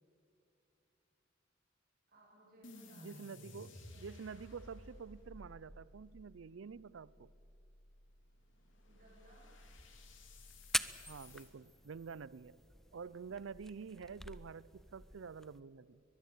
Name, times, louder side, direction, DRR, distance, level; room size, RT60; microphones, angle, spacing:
voice 1, 2.1-4.1 8.9-9.5, right 1 dB, 50° right, 7.3 m, -63 dB
sound 1, 2.6-11.5, left 1 dB, 70° left, 3.5 m, -56 dB
voice 2, 3.0-7.3 11.1-12.6 12.9-16.0, right 5 dB, 75° right, 0.5 m, -48 dB
sound 2, 9.6-15.6, left 1 dB, ahead, 0.6 m, -45 dB
23.0 x 21.0 x 8.4 m
head